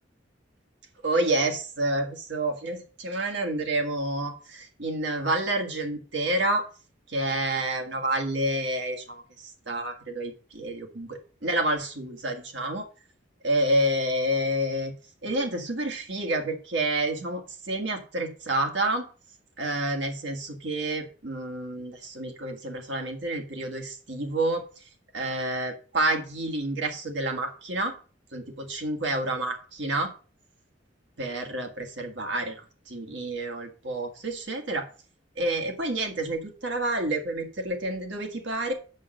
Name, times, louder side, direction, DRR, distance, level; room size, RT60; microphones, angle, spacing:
voice 1, 1.0-6.6 7.1-12.9 13.4-14.9 15.2-19.1 19.6-24.6 25.1-27.9 28.3-30.1 31.2-34.9 35.4-38.7, right 1 dB, 70° right, 3 dB, 2.0 m, -29 dB
7.8 x 5.4 x 6.5 m, 0.37 s
head